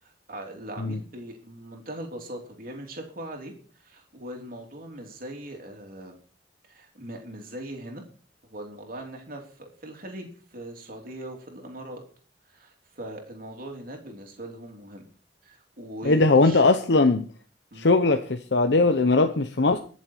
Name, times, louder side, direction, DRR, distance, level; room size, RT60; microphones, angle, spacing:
voice 1, 0.0-3.5 3.8-6.2 6.7-8.0 8.4-12.0 12.5-15.1 15.4-16.6 17.7-17.9, right 1 dB, 50° right, 3.3 m, -40 dB
voice 2, 16.0-17.3 17.8-19.8, left 3 dB, 75° left, 0.9 m, -20 dB
21.5 x 7.4 x 4.6 m
head